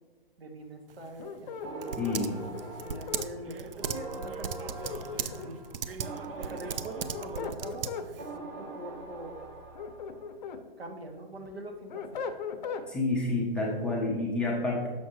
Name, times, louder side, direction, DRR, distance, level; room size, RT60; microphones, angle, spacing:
voice 1, 0.4-2.1 2.8-5.6 6.4-9.4 10.8-12.2, right 1 dB, 85° right, 4 dB, 1.1 m, -43 dB
Typing, 0.9-8.3, right 7 dB, 65° right, 0.5 m, -38 dB
sound 1, 1.2-3.3 4.6-5.7 6.9-8.1 9.5-10.6 11.1-12.9, left 6 dB, 50° left, 0.6 m, -39 dB
sound 2, 1.6-10.4, right 2 dB, 30° right, 1.0 m, -43 dB
voice 2, 2.0-2.4 12.9-14.9, left 2 dB, 5° left, -5 dB, 0.4 m, -29 dB
6.3 x 6.1 x 2.9 m, 1.5 s
figure-of-eight pair, 125°, 30 cm